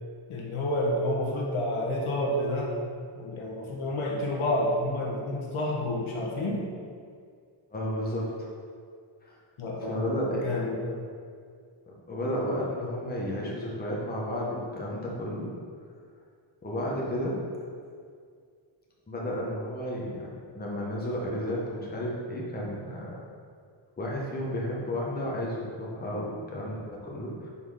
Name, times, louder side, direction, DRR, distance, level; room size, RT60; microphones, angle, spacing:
voice 1, 0.3-2.8 3.1-6.7 9.6-11.0, left 1 dB, 70° left, -2 dB, 1.2 m, -29 dB
voice 2, 7.7-8.5 9.2-9.4 9.8-10.7 12.1-15.5 16.6-17.3 19.1-23.2 24.0-27.5, equal, 20° left, -4 dB, 1.0 m, -32 dB
5.6 x 4.1 x 4.9 m, 2.1 s
wide cardioid pair, 150°, 49 cm